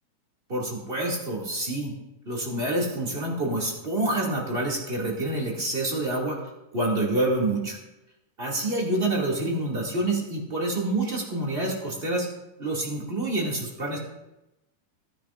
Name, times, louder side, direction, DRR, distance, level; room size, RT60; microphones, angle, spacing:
voice 1, 0.5-1.9 2.2-6.4 6.7-7.8 8.4-12.3 12.6-14.0, right 2 dB, 20° right, -3 dB, 2.2 m, -27 dB
19.0 x 9.8 x 2.5 m, 0.95 s
omnidirectional pair, 3.5 m